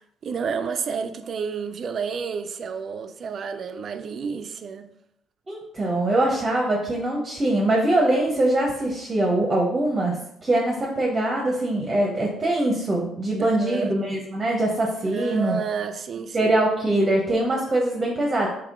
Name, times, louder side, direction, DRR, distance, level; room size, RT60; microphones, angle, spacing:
voice 1, 0.2-4.9 13.5-13.9 15.0-16.6, right 6 dB, 55° right, 10 dB, 0.4 m, -30 dB
voice 2, 5.5-10.2 10.4-15.6 16.3-18.5, right 1 dB, 30° right, -2 dB, 0.8 m, -23 dB
3.5 x 2.9 x 3.6 m, 0.76 s
supercardioid pair, 75°, 0 cm